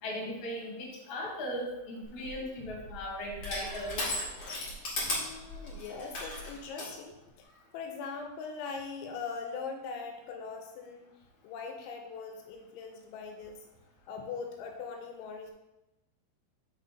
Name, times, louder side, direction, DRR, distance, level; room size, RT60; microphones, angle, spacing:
voice 1, 0.0-4.0, equal, 45° left, -4 dB, 1.8 m, -38 dB
Crushing, 2.0-6.9, left 2 dB, 65° left, 1.1 m, -37 dB
voice 2, 5.1-7.5 7.7-11.1 11.4-13.6 14.1-15.5, left 5 dB, 85° left, 4 dB, 2.9 m, -41 dB
6.3 x 5.9 x 4.1 m, 0.96 s
omnidirectional pair, 5.6 m